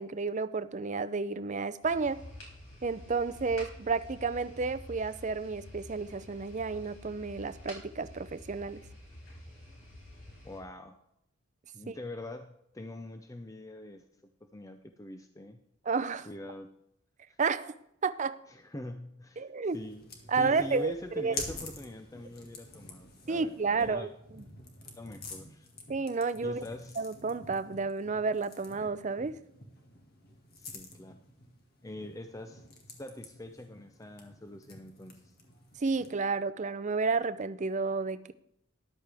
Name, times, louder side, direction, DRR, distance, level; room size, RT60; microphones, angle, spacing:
voice 1, 0.0-2.2 2.8-8.8 11.9-12.0 15.9-16.3 17.4-17.7 18.0-18.4 19.4-19.8 20.3-21.5 23.3-24.1 25.9-26.6 27.0-29.4 35.8-38.3, right 4 dB, 35° right, 14 dB, 0.5 m, -31 dB
sound 1, 1.8-10.6, left 1 dB, 80° left, 4.7 m, -49 dB
voice 2, 10.4-11.0 11.7-14.0 14.4-15.6 16.3-16.7 17.3-17.4 18.5-19.5 19.7-20.0 20.3-24.1 25.0-25.7 26.4-27.1 30.6-31.2 31.8-35.3, left 1 dB, 15° left, 7 dB, 0.6 m, -44 dB
sound 2, 19.6-36.3, left 3 dB, 50° left, 2.0 m, -48 dB
13.5 x 11.0 x 3.5 m, 0.77 s
head